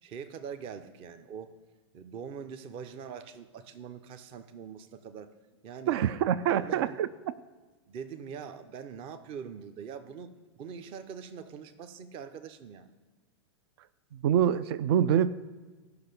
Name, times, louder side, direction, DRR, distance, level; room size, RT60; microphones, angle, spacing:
voice 1, 0.0-1.5 1.9-5.3 5.6-5.9 6.5-7.0 7.9-10.3 10.6-12.9, right 7 dB, 40° right, 10 dB, 0.9 m, -43 dB
voice 2, 5.9-7.3 14.1-15.3, right 9 dB, 60° right, 16 dB, 0.5 m, -26 dB
14.0 x 5.8 x 6.8 m, 1.3 s
hypercardioid pair, 110°, 15 cm